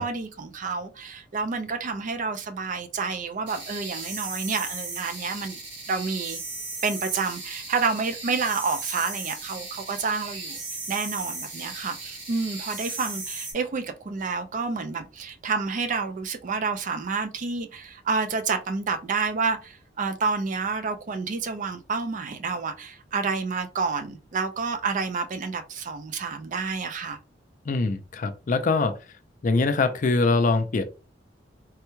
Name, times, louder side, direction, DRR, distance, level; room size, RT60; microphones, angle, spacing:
voice 1, 0.0-5.6 5.9-6.4 6.8-10.6 10.9-27.2, right 4 dB, 45° right, 0.4 m, -29 dB
sound 1, 3.5-13.5, right 3 dB, 75° right, 1.7 m, -36 dB
voice 2, 27.7-28.9 29.4-30.9, left 3 dB, 45° left, 0.4 m, -23 dB
3.3 x 2.2 x 3.0 m
head